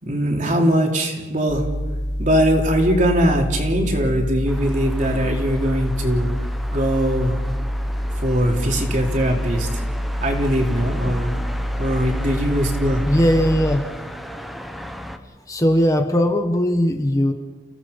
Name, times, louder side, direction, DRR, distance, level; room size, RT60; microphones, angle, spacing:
voice 1, 0.0-1.7 2.2-6.3 6.7-7.4 8.2-9.8 10.2-11.3 11.8-13.1, equal, 45° right, 0 dB, 3.8 m, -21 dB
sound 1, 1.5-13.8, equal, 75° left, 1.5 m, -26 dB
sound 2, 4.5-15.2, equal, ahead, 1.3 m, -36 dB
voice 2, 13.1-13.8 15.5-17.3, equal, 20° left, 5 dB, 1.4 m, -18 dB
30.0 x 17.5 x 5.6 m, 1.2 s
head